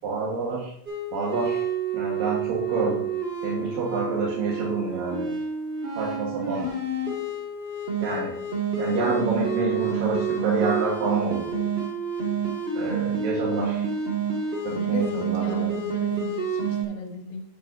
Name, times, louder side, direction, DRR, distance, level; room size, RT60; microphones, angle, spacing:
voice 1, 0.0-0.7 1.1-1.6 1.9-3.1 3.4-5.3 6.0-6.7 8.0-8.3 8.8-11.6 12.7-13.8 14.6-15.7, right 3 dB, 80° right, -4 dB, 3.0 m, -28 dB
sound 1, 0.9-16.8, right 5 dB, 25° right, 1.4 m, -28 dB
voice 2, 14.7-17.4, left 3 dB, 85° left, 0 dB, 0.8 m, -36 dB
8.9 x 8.8 x 2.6 m, 0.66 s
omnidirectional pair, 4.0 m